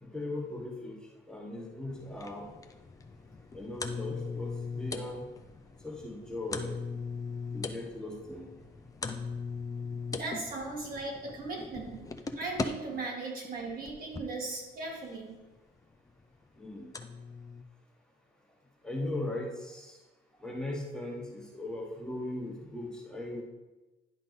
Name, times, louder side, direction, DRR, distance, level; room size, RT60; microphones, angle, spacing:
voice 1, 0.0-1.0 1.3-2.5 3.5-5.2 5.8-6.8 7.5-8.5 12.9-13.0 16.6-16.9 18.8-20.0 20.4-23.4, left 1 dB, 5° left, -3 dB, 1.3 m, -38 dB
sound 1, 1.9-12.6 13.4-14.3 15.6-15.7 16.1-16.2 16.9-17.6, left 4 dB, 20° left, 0.5 m, -39 dB
voice 2, 10.1-12.0 12.4-15.3, right 3 dB, 60° right, -2 dB, 2.2 m, -38 dB
10.5 x 3.8 x 4.0 m, 1.1 s
cardioid pair, 110°, 17 cm